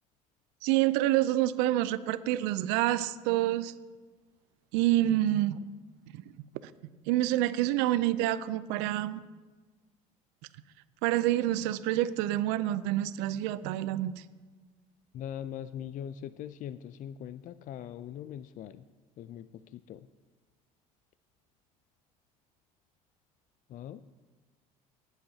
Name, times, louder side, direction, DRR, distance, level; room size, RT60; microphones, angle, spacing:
voice 1, 0.6-3.7 4.7-5.6 7.1-9.2 11.0-14.1, right 14 dB, 70° right, 14 dB, 0.5 m, -27 dB
voice 2, 15.1-18.8 19.2-20.1 23.7-24.0, left 10 dB, 45° left, 14 dB, 0.4 m, -41 dB
18.5 x 8.0 x 2.8 m, 1.3 s
hypercardioid pair, 70°, 18 cm